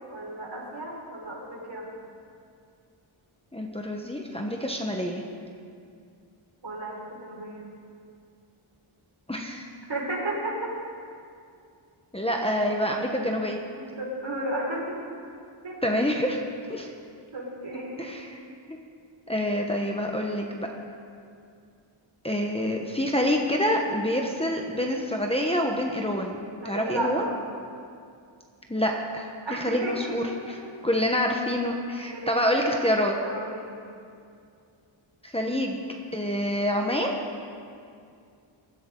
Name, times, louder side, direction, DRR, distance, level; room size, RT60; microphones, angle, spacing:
voice 1, 0.1-1.9 6.6-7.7 9.9-10.7 13.8-15.0 15.6-15.8 17.3-18.1 26.6-27.4 29.4-30.6 32.1-32.8 33.2-33.8, right 1 dB, 60° right, -5 dB, 5.4 m, -33 dB
voice 2, 3.5-5.2 9.3-9.7 12.1-13.6 15.8-16.4 16.7-16.9 18.0-18.4 18.7-18.8 19.3-20.7 22.2-26.4 26.6-27.2 28.7-30.6 30.8-33.2 35.2-35.8 36.1-37.2, equal, 10° left, 0 dB, 1.2 m, -27 dB
23.5 x 15.0 x 3.9 m, 2.4 s
wide cardioid pair, 115°, 50 cm